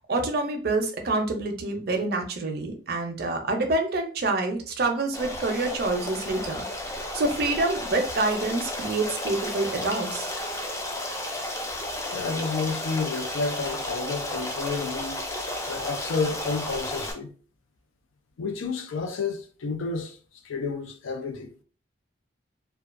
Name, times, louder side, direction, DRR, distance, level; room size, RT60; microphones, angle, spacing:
voice 1, 0.0-6.6 7.1-10.3, right 2 dB, 55° right, 0.5 m, -27 dB
Stream, 5.1-17.1, left 1 dB, 15° left, 0.3 m, -33 dB
voice 2, 12.1-15.2 15.7-17.3 18.4-20.2 20.4-21.5, left 4 dB, 85° left, 0.4 m, -30 dB
2.3 x 2.2 x 2.4 m
head